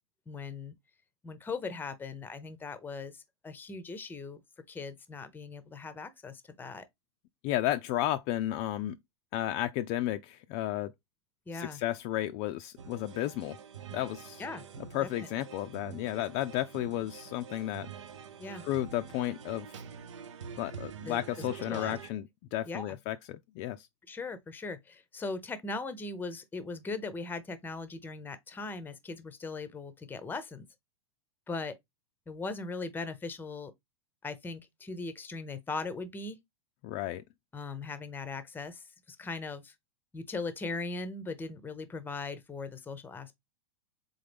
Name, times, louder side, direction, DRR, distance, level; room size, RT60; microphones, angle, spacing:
voice 1, 0.3-0.7 1.2-4.4 4.7-6.8 11.5-11.8 14.4-14.6 15.0-15.1 18.4-18.6 21.1-22.0 22.7-23.0 24.1-30.7 31.5-31.7 32.3-33.7 34.2-36.4 37.5-39.7 40.1-43.3, left 3 dB, 15° left, 0.7 m, -39 dB
voice 2, 7.4-9.0 9.3-10.9 11.5-13.6 13.9-14.4 14.9-17.9 18.6-19.8 20.6-23.9 36.8-37.2, left 14 dB, 45° left, 0.4 m, -33 dB
sound 1, 12.8-22.1, right 7 dB, 75° right, 0.6 m, -46 dB
3.8 x 3.7 x 3.4 m
hypercardioid pair, 105°, 15 cm